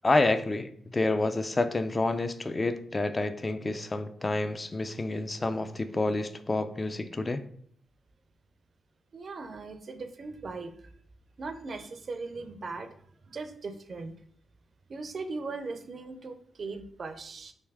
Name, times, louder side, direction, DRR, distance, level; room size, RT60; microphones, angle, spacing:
voice 1, 0.0-7.4, left 2 dB, 25° left, 11 dB, 0.3 m, -28 dB
voice 2, 9.1-10.9 11.4-13.0 13.3-14.1 14.9-17.5, right 3 dB, 50° right, 9 dB, 0.4 m, -39 dB
3.4 x 2.6 x 3.3 m, 0.62 s
cardioid pair, 80°, 0 cm